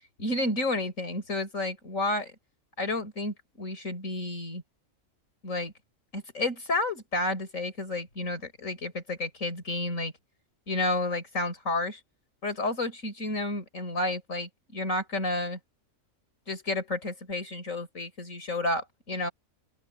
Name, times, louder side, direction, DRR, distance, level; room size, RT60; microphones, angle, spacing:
voice 1, 0.2-2.3 2.8-4.6 5.4-5.7 6.1-10.1 10.7-12.0 12.4-15.6 16.5-19.3, left 2 dB, 75° left, 5.0 m, -31 dB
open air
omnidirectional pair, 1.4 m